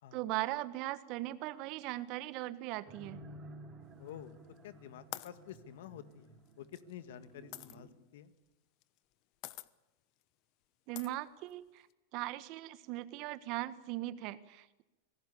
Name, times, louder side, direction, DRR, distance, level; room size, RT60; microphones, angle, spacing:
voice 1, 0.1-3.2 10.9-11.9 12.1-14.8, right 16 dB, 50° right, 14 dB, 1.5 m, -39 dB
sound 1, 2.9-7.9, right 1 dB, 25° right, 4.9 m, -54 dB
voice 2, 4.0-4.4 4.6-8.3, left 10 dB, 75° left, 13 dB, 1.8 m, -50 dB
sound 2, 4.1-4.6 5.1-7.8 8.8-9.1 9.4-9.7 10.2-10.3 10.9-11.9, left 18 dB, 50° left, 1.1 m, -47 dB
26.0 x 17.5 x 8.5 m, 0.99 s
supercardioid pair, 125°, 0 cm